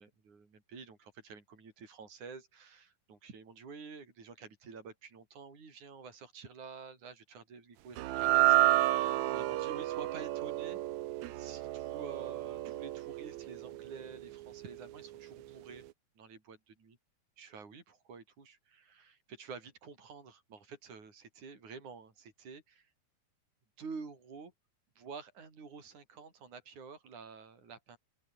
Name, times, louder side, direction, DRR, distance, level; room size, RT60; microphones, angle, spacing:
voice 1, 0.0-10.8 11.3-15.8 16.2-16.6 16.8-17.0 17.4-22.9 23.8-24.5 25.0-28.0, right 5 dB, 50° right, 7.2 m, -49 dB
sound 1, 8.0-14.4, right 15 dB, 80° right, 1.7 m, -31 dB
open air
omnidirectional pair, 4.4 m